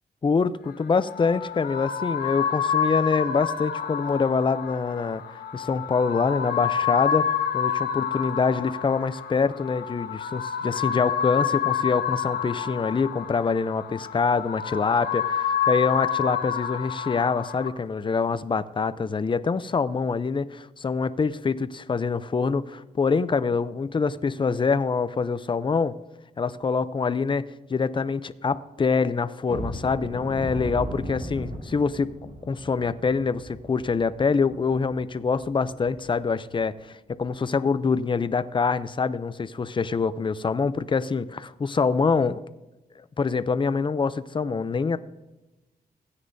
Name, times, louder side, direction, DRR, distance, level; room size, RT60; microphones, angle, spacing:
voice 1, 0.2-5.2 5.5-26.0 26.4-32.1 32.5-36.7 37.1-42.4 43.0-45.0, left 5 dB, 30° left, 14 dB, 0.5 m, -25 dB
sound 1, 0.7-17.7, left 8 dB, 75° left, 1.0 m, -28 dB
sound 2, 29.5-36.2 36.6-36.7 37.1-37.3 37.8-37.9, right 1 dB, 50° right, 2.4 m, -38 dB
16.0 x 9.7 x 2.7 m, 1.0 s
cardioid pair, 85°, 16 cm